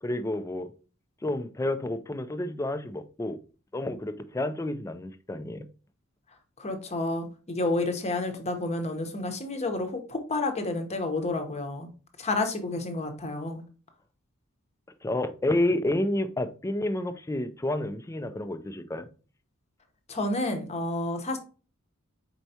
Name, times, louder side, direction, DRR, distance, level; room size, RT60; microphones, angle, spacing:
voice 1, 0.0-0.7 1.2-3.4 3.7-5.7 15.0-19.0, left 1 dB, 15° left, 0.4 m, -30 dB
voice 2, 6.6-11.9 12.2-13.6 20.1-21.4, left 2 dB, 30° left, 0.8 m, -30 dB
4.5 x 4.4 x 2.7 m
head